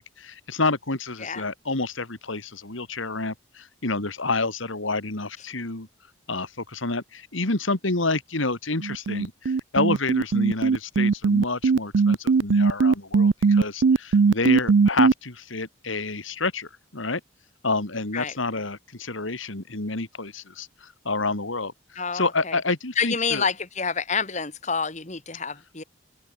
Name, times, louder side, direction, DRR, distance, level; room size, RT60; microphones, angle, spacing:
voice 1, 0.0-5.9 6.3-17.2 17.6-23.4, left 3 dB, 80° left, 2.7 m, -29 dB
sound 1, 8.8-15.1, right 4 dB, 65° right, 0.4 m, -19 dB
voice 2, 21.9-22.5 23.0-25.8, left 5 dB, 35° left, 1.8 m, -28 dB
open air
head